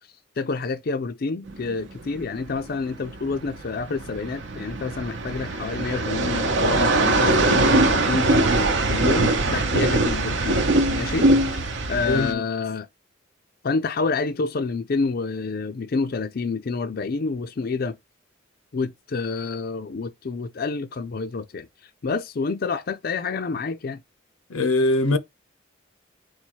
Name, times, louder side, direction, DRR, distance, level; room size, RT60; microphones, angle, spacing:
voice 1, 0.4-10.6 10.9-12.9 13.6-18.0 18.7-24.0, left 4 dB, 50° left, 0.4 m, -28 dB
sound 1, 1.5-12.3, right 2 dB, 60° right, 0.8 m, -22 dB
voice 2, 12.1-12.4 24.5-25.2, left 2 dB, 90° left, 0.7 m, -21 dB
4.2 x 2.1 x 4.4 m
head